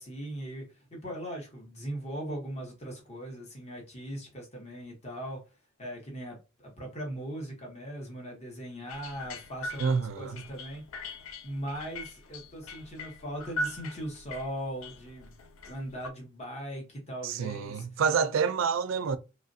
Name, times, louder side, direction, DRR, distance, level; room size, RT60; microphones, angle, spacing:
voice 1, 0.0-5.4 5.8-10.8 11.4-15.3 15.7-17.9, right 1 dB, 35° left, 1.0 m, -39 dB
sound 1, 8.9-16.1, left 1 dB, 90° left, 0.4 m, -41 dB
voice 2, 9.8-10.4 17.2-19.2, right 6 dB, 70° right, 0.3 m, -28 dB
3.0 x 2.4 x 2.6 m
head